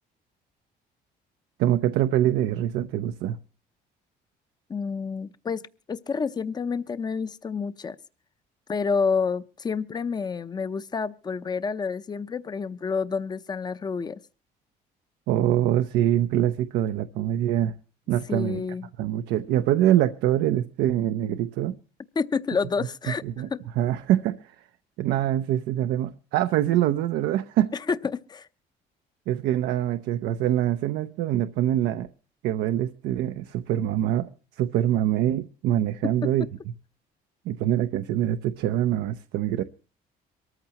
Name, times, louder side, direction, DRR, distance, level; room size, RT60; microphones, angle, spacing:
voice 1, 1.6-3.4 15.3-17.7 18.1-18.6 19.0-21.7 23.2-23.5 23.8-24.6 25.0-27.7 29.3-32.1 32.4-36.5 37.5-39.6, right 12 dB, 85° right, 0.7 m, -24 dB
voice 2, 4.7-5.6 5.9-8.0 8.7-14.2 18.3-18.9 22.2-23.2 23.5-23.6 27.9-28.5, left 5 dB, 25° left, 0.7 m, -29 dB
23.5 x 14.0 x 2.9 m
cardioid pair, 110°, 17 cm